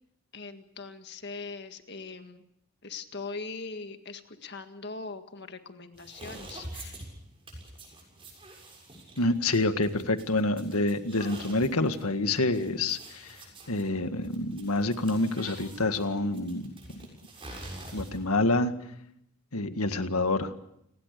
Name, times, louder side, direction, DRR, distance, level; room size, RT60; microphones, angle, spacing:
voice 1, 0.3-2.4 2.8-7.1, left 4 dB, 50° left, 7 dB, 1.8 m, -41 dB
sound 1, 5.9-18.4, right 1 dB, 25° right, 6.8 m, -46 dB
voice 2, 9.2-13.4 13.7-16.7 17.0-17.1 17.9-18.7 19.5-20.5, left 2 dB, 80° left, 9 dB, 1.8 m, -27 dB
29.5 x 20.0 x 6.8 m, 0.77 s
head